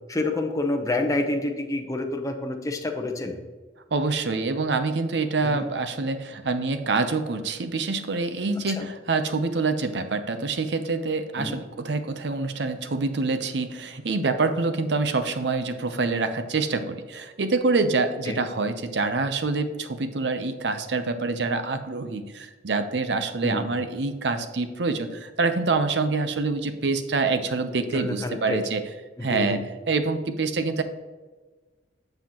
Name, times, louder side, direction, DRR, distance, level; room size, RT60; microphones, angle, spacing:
voice 1, 0.1-3.4 5.4-5.7 8.7-8.9 11.4-11.6 18.3-18.4 23.4-23.7 27.8-28.6 29.2-29.6, left 2 dB, 20° left, 4 dB, 0.8 m, -28 dB
voice 2, 3.9-28.8 29.2-30.8, right 3 dB, 70° right, 9 dB, 0.6 m, -26 dB
7.8 x 7.3 x 2.9 m, 1.3 s
head